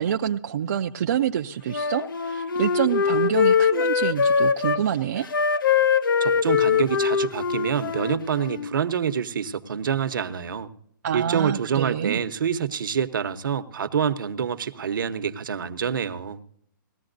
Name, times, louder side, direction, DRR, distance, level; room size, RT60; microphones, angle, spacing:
voice 1, 0.0-5.3 11.0-12.2, right 9 dB, 45° right, 0.5 m, -26 dB
Wind instrument woodwind instrument, 1.7-4.8 5.2-8.7, left 6 dB, 70° left, 0.9 m, -22 dB
voice 2, 6.2-10.7 11.1-16.4, right 7 dB, 70° right, 0.9 m, -26 dB
18.5 x 13.5 x 2.6 m
hypercardioid pair, 160°, 11 cm